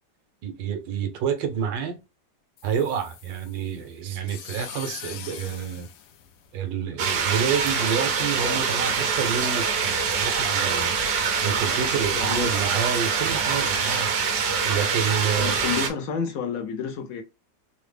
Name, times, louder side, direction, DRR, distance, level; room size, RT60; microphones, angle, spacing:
voice 1, 0.4-2.0 2.6-5.9 6.5-11.0 11.4-14.1 14.6-15.7, right 7 dB, 85° right, 1.5 m, -28 dB
sound 1, 2.6-6.9, left 9 dB, 80° left, 1.3 m, -43 dB
sound 2, 7.0-15.9, right 6 dB, 65° right, 1.0 m, -24 dB
voice 2, 12.1-12.5 15.4-17.2, left 6 dB, 65° left, 0.9 m, -30 dB
3.8 x 2.0 x 3.3 m
omnidirectional pair, 2.0 m